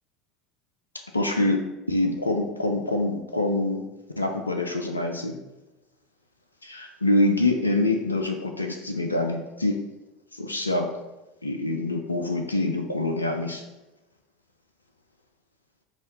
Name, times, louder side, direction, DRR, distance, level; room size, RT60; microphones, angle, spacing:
voice 1, 1.1-3.9 4.2-5.4 6.6-9.8 10.3-10.9 11.4-13.6, left 2 dB, 85° left, 4 dB, 0.3 m, -25 dB
5.3 x 2.3 x 3.1 m, 1.0 s
figure-of-eight pair, 70°, 0 cm